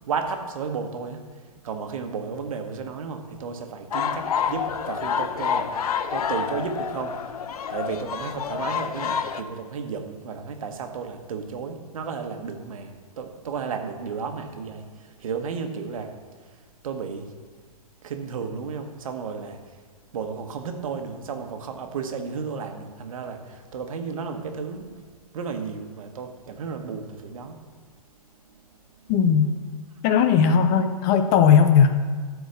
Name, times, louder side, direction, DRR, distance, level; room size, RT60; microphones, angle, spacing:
voice 1, 0.1-16.1 16.4-16.5 16.8-17.3 18.0-19.8 20.1-25.0 25.3-27.6 28.4-28.6, right 5 dB, 60° right, 6 dB, 1.3 m, -33 dB
sound 1, 3.9-9.4, left 7 dB, 75° left, 0.7 m, -28 dB
voice 2, 29.1-29.5 30.0-31.9, left 7 dB, 15° left, 9 dB, 0.3 m, -17 dB
13.0 x 4.5 x 6.6 m, 1.5 s
hypercardioid pair, 155°, 19 cm